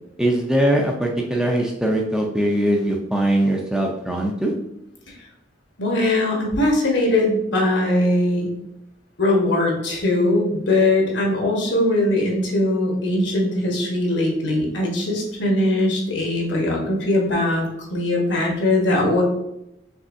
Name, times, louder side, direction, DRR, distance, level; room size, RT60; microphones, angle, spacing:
voice 1, 0.2-4.5, right 1 dB, 5° right, 0 dB, 0.4 m, -21 dB
voice 2, 5.8-8.5 9.2-19.2, left 1 dB, 75° left, -1 dB, 1.3 m, -20 dB
5.4 x 3.3 x 2.6 m, 0.83 s
head